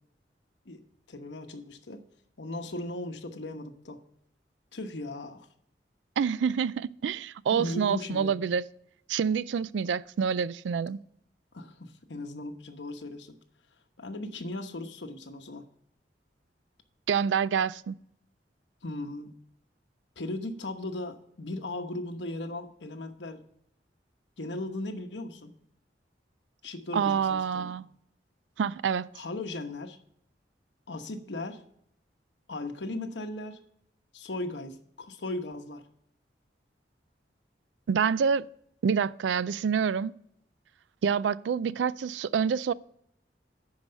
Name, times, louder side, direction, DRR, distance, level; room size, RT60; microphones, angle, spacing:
voice 1, 1.1-2.0 2.4-4.0 4.7-5.5 7.5-8.3 11.5-13.4 14.0-15.6 18.8-19.3 20.2-23.4 24.4-25.5 26.6-27.8 29.1-30.0 30.9-31.6 32.5-33.6 34.1-35.8, left 2 dB, 85° left, 1.0 m, -37 dB
voice 2, 6.2-8.6 9.1-11.0 17.1-18.0 26.9-27.9 28.6-29.1 37.9-38.5 38.8-40.1 41.0-42.7, right 6 dB, 85° right, 0.3 m, -27 dB
11.5 x 4.9 x 6.5 m
head